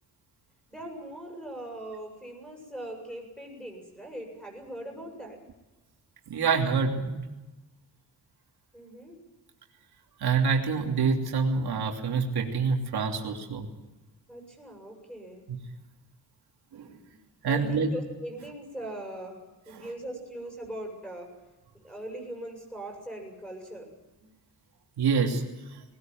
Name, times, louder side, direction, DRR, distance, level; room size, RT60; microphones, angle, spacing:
voice 1, 0.7-5.4 8.7-9.2 14.3-15.4 17.5-19.4 19.6-21.3 21.8-23.9 24.2-24.3, right 1 dB, 5° left, 2 dB, 7.6 m, -40 dB
voice 2, 6.3-7.2 10.2-13.7 15.5-15.6 16.7-16.9 17.4-17.9 19.7-19.9 25.0-25.4, right 5 dB, 85° right, 1 dB, 3.0 m, -26 dB
20.0 x 19.5 x 9.3 m, 1.1 s
wide cardioid pair, 140°, 38 cm